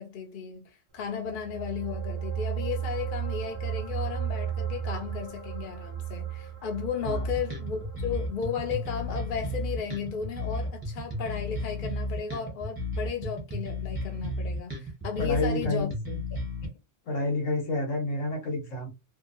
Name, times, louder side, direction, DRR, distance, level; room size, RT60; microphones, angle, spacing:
voice 1, 0.0-15.9, left 7 dB, 50° left, 0.8 m, -34 dB
sound 1, 1.1-11.8 12.1-12.3, right 9 dB, 55° right, 0.9 m, -36 dB
sound 2, 7.1-16.7, left 1 dB, 20° right, 1.0 m, -33 dB
voice 2, 15.2-16.2 17.1-18.9, left 2 dB, 80° left, 1.3 m, -29 dB
2.7 x 2.4 x 2.6 m
omnidirectional pair, 1.3 m